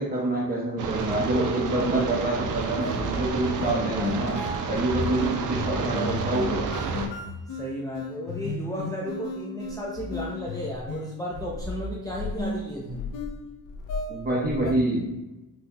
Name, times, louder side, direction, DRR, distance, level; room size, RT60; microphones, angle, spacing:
voice 1, 0.0-6.7 14.1-15.1, right 2 dB, 25° right, -2 dB, 0.9 m, -26 dB
sound 1, 0.8-7.1, right 5 dB, 60° right, 0.5 m, -30 dB
sound 2, 2.4-14.7, left 2 dB, 60° left, 0.5 m, -35 dB
voice 2, 7.6-13.1, equal, 10° left, -5 dB, 0.5 m, -34 dB
3.9 x 2.9 x 2.2 m, 1.0 s
cardioid pair, 100°, 36 cm